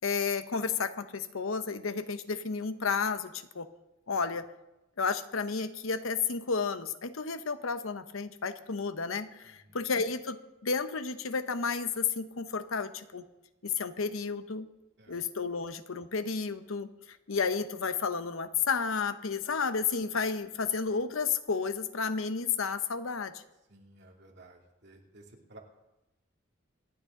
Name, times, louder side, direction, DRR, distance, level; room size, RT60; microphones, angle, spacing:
voice 1, 0.0-3.7 4.1-4.5 5.0-13.2 13.6-14.7 15.1-23.4, left 5 dB, 85° left, 11 dB, 0.9 m, -32 dB
voice 2, 9.4-9.8 15.0-15.2 23.7-25.6, right 2 dB, 55° right, -1 dB, 2.7 m, -55 dB
26.0 x 8.9 x 3.8 m, 0.98 s
head